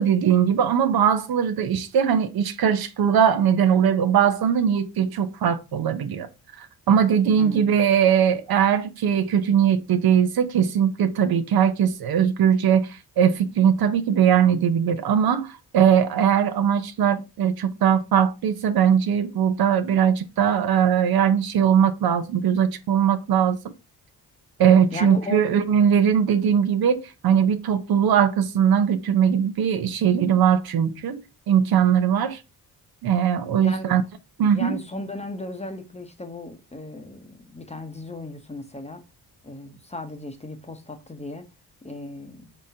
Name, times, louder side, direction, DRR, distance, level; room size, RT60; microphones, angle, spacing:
voice 1, 0.0-6.3 6.6-23.7 24.6-32.4 33.0-34.0 34.4-34.8, right 8 dB, 65° right, 0.7 m, -20 dB
voice 2, 7.4-7.8 24.9-25.7 33.6-34.0 34.5-39.0 39.4-41.5 41.8-42.5, left 2 dB, 15° left, 0.8 m, -36 dB
3.9 x 3.6 x 2.7 m
cardioid pair, 65°, 40 cm